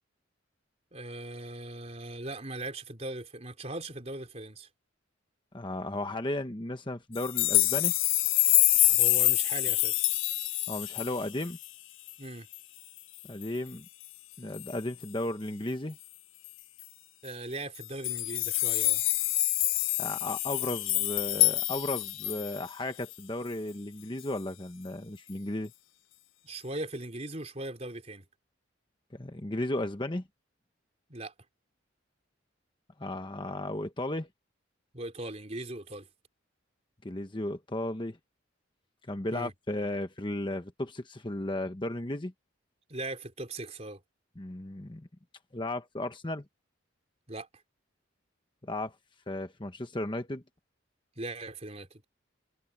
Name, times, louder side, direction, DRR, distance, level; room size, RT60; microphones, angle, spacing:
voice 1, 0.9-4.7 8.9-10.0 12.2-12.5 17.2-19.0 26.4-28.3 31.1-31.3 34.9-36.1 39.3-39.5 42.9-44.0 47.3-47.5 51.2-51.9, right 2 dB, 30° right, 3.7 m, -39 dB
voice 2, 5.5-7.9 10.7-11.6 13.2-13.8 14.4-16.0 20.0-25.7 29.1-30.2 33.0-34.3 37.0-38.2 39.1-42.3 44.4-45.1 45.5-46.4 48.6-48.9 49.3-50.4, left 1 dB, 25° left, 1.1 m, -35 dB
sound 1, 7.1-11.7 12.1-12.2 12.5-12.6 13.0-13.4 14.5-14.8 16.4-16.5 16.8-16.9 17.7-22.6 23.1-23.2, left 18 dB, 75° left, 0.6 m, -26 dB
head